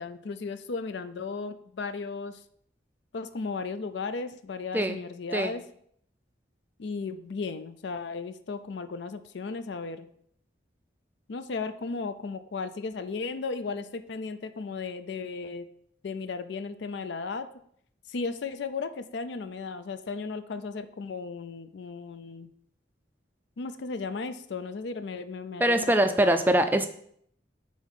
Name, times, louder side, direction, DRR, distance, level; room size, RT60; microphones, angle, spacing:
voice 1, 0.0-2.4 3.1-5.6 6.8-10.1 11.3-15.7 16.0-17.5 18.1-22.5 23.6-25.9 26.2-26.4, left 4 dB, 70° left, 11 dB, 0.4 m, -35 dB
voice 2, 25.6-26.9, right 1 dB, 10° right, 8 dB, 0.3 m, -23 dB
5.4 x 4.2 x 4.8 m, 0.66 s
head